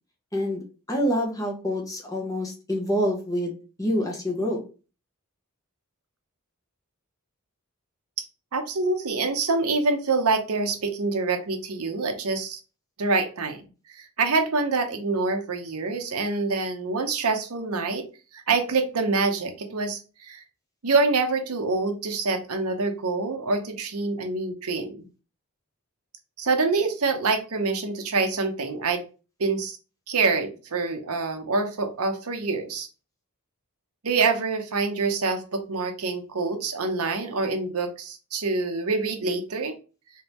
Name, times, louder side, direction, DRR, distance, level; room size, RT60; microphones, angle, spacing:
voice 1, 0.3-0.6 0.9-4.6, equal, 15° left, 0 dB, 0.9 m, -27 dB
voice 2, 8.5-12.6 13.0-13.6 13.9-18.1 18.3-20.4 20.8-25.0 26.4-29.0 29.4-29.8 30.1-32.9 34.0-39.7, right 3 dB, 80° right, 6 dB, 0.8 m, -26 dB
3.5 x 3.2 x 3.0 m, 0.34 s
head